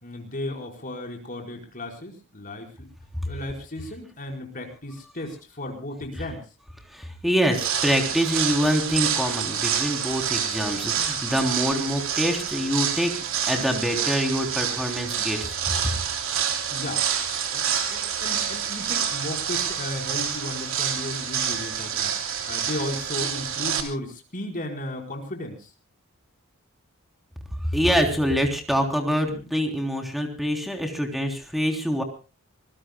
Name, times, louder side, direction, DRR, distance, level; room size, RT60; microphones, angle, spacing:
voice 1, 0.0-2.9 3.2-6.4 16.7-17.0 17.5-25.7, left 1 dB, 40° left, 2 dB, 4.8 m, -35 dB
voice 2, 6.9-13.1 13.5-15.7 27.7-32.0, equal, ahead, 3 dB, 3.5 m, -25 dB
sound 1, 7.5-23.8, right 8 dB, 65° right, 3.2 m, -28 dB
26.0 x 20.5 x 2.3 m, 0.33 s
head